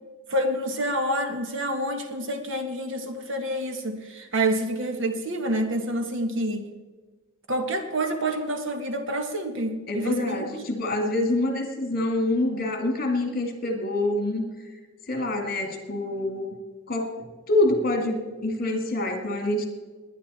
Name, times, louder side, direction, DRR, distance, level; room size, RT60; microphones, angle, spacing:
voice 1, 0.3-6.7 7.5-10.6, right 1 dB, 60° right, 6 dB, 1.5 m, -28 dB
voice 2, 9.9-14.4 15.1-16.5 16.9-19.7, left 2 dB, 45° left, 4 dB, 2.2 m, -26 dB
19.5 x 10.5 x 4.2 m, 1.3 s
head